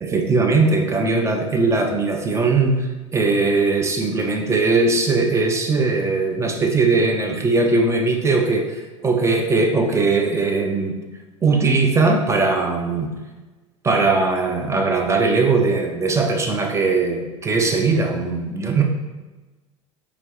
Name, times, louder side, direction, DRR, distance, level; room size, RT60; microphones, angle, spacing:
voice 1, 0.0-11.0 11.4-13.1 13.8-18.8, right 3 dB, 15° right, 3 dB, 0.7 m, -20 dB
4.4 x 3.4 x 2.8 m, 1.2 s
figure-of-eight pair, 80°, 17 cm